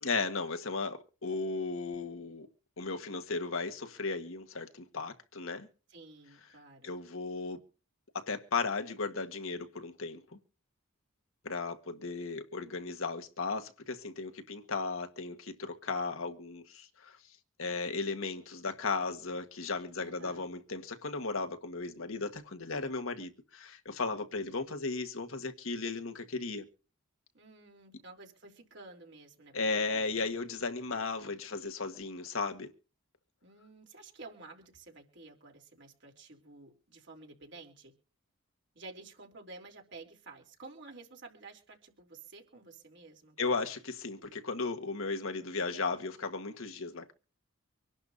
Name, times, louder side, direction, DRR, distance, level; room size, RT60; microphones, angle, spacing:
voice 1, 0.0-2.5 2.8-5.7 6.8-7.6 8.1-10.2 11.4-17.2 17.6-26.6 29.5-32.7 43.4-47.1, left 4 dB, 75° left, 1.5 m, -35 dB
voice 2, 5.9-6.9 20.0-20.6 27.3-30.3 33.4-37.9 38.7-43.6, right 3 dB, 55° right, 3.4 m, -52 dB
25.5 x 11.5 x 2.7 m
head